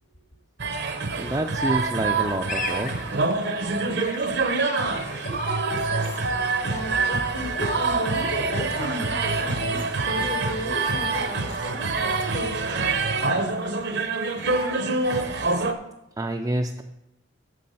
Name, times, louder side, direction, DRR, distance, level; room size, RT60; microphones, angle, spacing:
sound 1, 0.6-15.7, right 3 dB, 60° right, 0.8 m, -26 dB
voice 1, 1.2-2.9 16.2-16.8, right 1 dB, 20° right, 3 dB, 0.4 m, -27 dB
sound 2, 2.5-11.7, left 5 dB, 40° left, 0.6 m, -41 dB
voice 2, 5.2-6.1 6.7-12.9, left 1 dB, 65° left, 1 dB, 2.1 m, -34 dB
8.5 x 7.1 x 5.5 m, 0.87 s
head